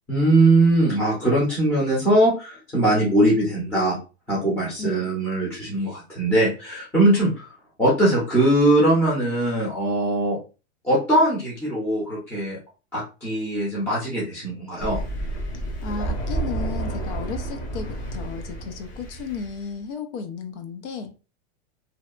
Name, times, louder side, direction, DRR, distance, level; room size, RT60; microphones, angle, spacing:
voice 1, 0.1-4.0 4.3-7.5 7.8-10.4 10.8-12.6 12.9-15.0, right 1 dB, 5° left, -7 dB, 0.6 m, -21 dB
voice 2, 4.8-5.1 15.8-21.1, left 4 dB, 75° left, 6 dB, 0.6 m, -33 dB
Thunder, 14.8-19.6, right 2 dB, 40° left, 0.9 m, -30 dB
2.7 x 2.1 x 2.4 m, 0.32 s
supercardioid pair, 165°, 35 cm